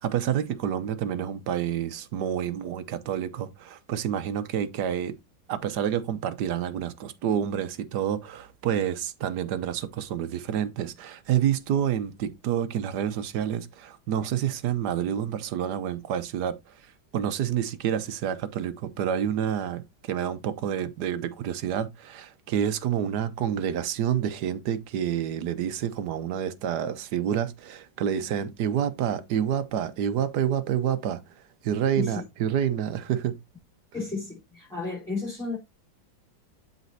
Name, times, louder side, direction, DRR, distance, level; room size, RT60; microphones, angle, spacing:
voice 1, 0.0-5.1 5.5-16.5 17.1-31.2 31.6-33.3, right 9 dB, 65° right, 1.2 m, -28 dB
voice 2, 33.9-35.6, left 3 dB, ahead, 3.4 m, -32 dB
12.5 x 4.1 x 2.7 m
omnidirectional pair, 2.1 m